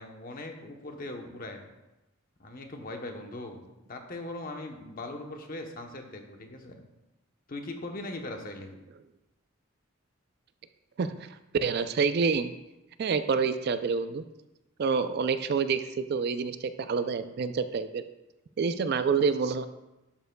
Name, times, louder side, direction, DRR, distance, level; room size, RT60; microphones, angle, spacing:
voice 1, 0.0-1.7 2.4-6.8 7.5-8.7, left 2 dB, 45° left, 4 dB, 0.9 m, -40 dB
voice 2, 11.0-11.3 11.6-12.5 13.0-14.2 14.8-18.0 18.6-19.7, right 5 dB, 50° right, 11 dB, 0.4 m, -27 dB
11.5 x 6.8 x 2.2 m, 0.99 s
head